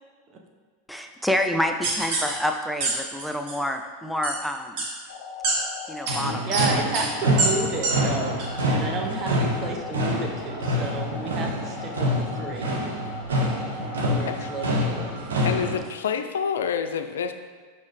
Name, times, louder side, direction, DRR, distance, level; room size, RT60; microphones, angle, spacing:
voice 1, 0.9-4.8 5.9-6.5, left 1 dB, ahead, 4 dB, 0.4 m, -28 dB
sound 1, 1.8-2.3 2.8-2.9 3.2-3.5 4.2-4.3 4.8-4.9 5.4-5.5 6.1-6.2 6.5-6.7 6.9-7.1 7.4-7.5 7.8-7.9 8.4-8.5, right 3 dB, 60° right, 1.5 m, -25 dB
sound 2, 5.1-15.1, left 6 dB, 55° left, 0.9 m, -39 dB
sound 3, 6.1-15.8, equal, 85° right, 1.0 m, -27 dB
voice 2, 6.4-12.7 14.1-15.0, right 3 dB, 35° right, 1 dB, 0.9 m, -31 dB
voice 3, 14.3-14.8 15.4-17.3, left 7 dB, 80° left, 8 dB, 0.3 m, -28 dB
5.4 x 5.4 x 3.2 m, 1.5 s
hypercardioid pair, 95°, 0 cm